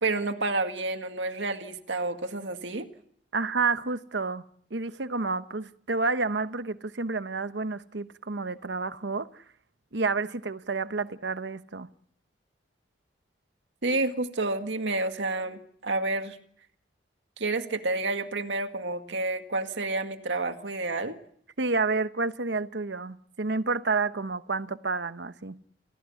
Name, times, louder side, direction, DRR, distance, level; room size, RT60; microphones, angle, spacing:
voice 1, 0.0-2.9 13.8-16.4 17.4-21.2, right 2 dB, 85° right, 1.9 m, -29 dB
voice 2, 3.3-4.4 4.7-9.4 9.9-11.9 21.6-25.6, right 4 dB, 70° right, 1.0 m, -29 dB
29.5 x 15.5 x 8.5 m
head